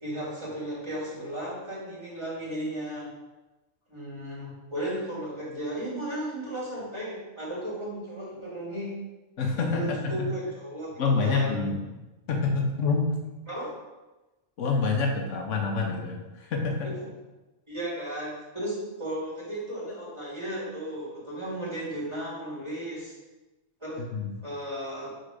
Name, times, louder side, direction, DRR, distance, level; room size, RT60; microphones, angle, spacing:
voice 1, 0.0-3.1 3.9-8.9 9.5-11.7 13.5-13.7 17.0-17.1 17.7-23.1 23.8-24.1 24.4-25.2, right 1 dB, 20° right, -7 dB, 2.0 m, -35 dB
voice 2, 9.4-10.3 11.0-11.8 12.3-13.2 14.6-16.9 24.0-24.3, left 4 dB, 70° left, 1 dB, 1.1 m, -27 dB
5.4 x 3.9 x 4.8 m, 1.1 s
omnidirectional pair, 1.3 m